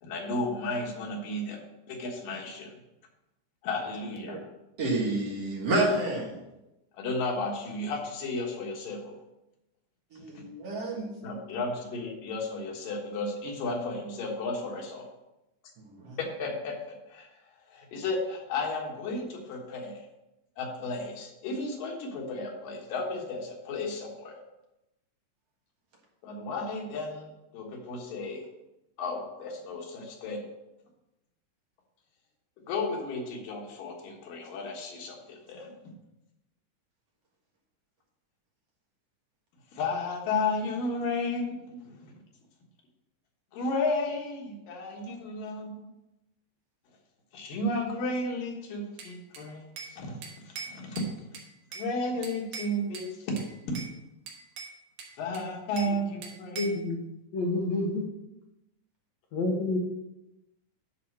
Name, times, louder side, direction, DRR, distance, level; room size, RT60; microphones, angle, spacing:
voice 1, 0.0-2.8 3.6-4.4 6.9-9.2 10.2-10.4 11.2-15.1 16.2-17.3 17.7-20.1 20.6-24.4 26.2-28.4 29.0-30.4 32.7-35.7 39.7-42.1 43.5-45.9 47.3-51.0 51.7-53.8 55.2-56.8, left 2 dB, 85° left, 3.2 m, -33 dB
voice 2, 4.8-6.3 10.1-11.1 16.0-16.2, right 2 dB, 55° right, 2.4 m, -29 dB
Bell / Glass, 49.0-50.0 50.2-51.9 52.2-53.1 53.4-53.9 54.3-56.0 56.2-56.8, right 5 dB, 90° right, 3.1 m, -42 dB
voice 3, 56.5-57.0 57.3-58.0 59.3-59.8, left 2 dB, 60° left, 2.4 m, -28 dB
10.5 x 4.1 x 6.3 m
omnidirectional pair, 3.8 m